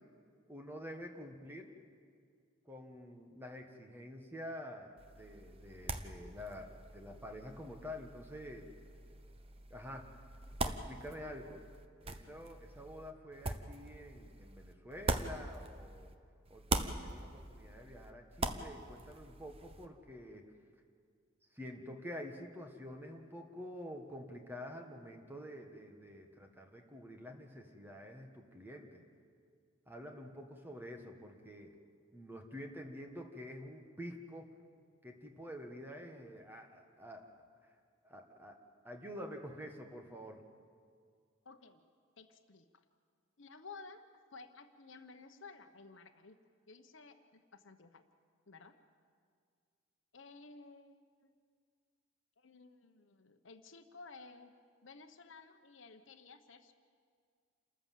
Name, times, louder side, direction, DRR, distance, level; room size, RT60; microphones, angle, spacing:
voice 1, 0.5-1.7 2.6-8.7 9.7-10.1 10.6-11.6 12.0-16.1 16.5-20.5 21.5-29.0 29.9-31.8 32.1-34.5 35.0-37.3 37.6-37.7 38.0-38.6 38.8-40.4, equal, 10° right, 3 dB, 1.5 m, -48 dB
sound 1, 5.0-16.2 16.4-19.9, right 2 dB, 25° right, 0.9 m, -42 dB
voice 2, 41.4-41.8 42.2-42.8 43.4-44.0 44.3-46.4 46.7-48.0 48.5-48.8 50.1-51.3 52.4-54.5 54.8-56.7, left 4 dB, 60° left, 7 dB, 1.1 m, -55 dB
28.0 x 14.0 x 7.6 m, 2.1 s
head